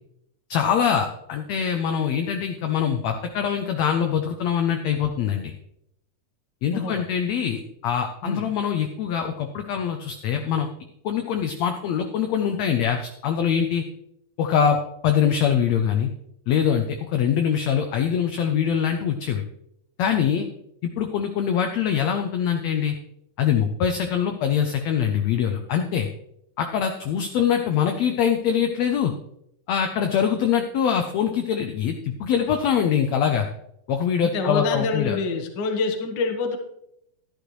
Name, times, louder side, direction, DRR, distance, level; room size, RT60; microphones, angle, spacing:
voice 1, 0.5-5.5 6.6-10.7 11.0-13.8 14.4-14.8 15.0-16.1 16.5-19.4 20.0-20.5 20.8-23.0 23.4-26.1 26.6-29.1 29.7-33.5 33.9-35.2, left 8 dB, 80° left, 6 dB, 1.5 m, -23 dB
voice 2, 34.2-36.6, left 4 dB, 55° left, 4 dB, 1.2 m, -26 dB
11.5 x 11.5 x 3.1 m, 0.76 s
omnidirectional pair, 3.9 m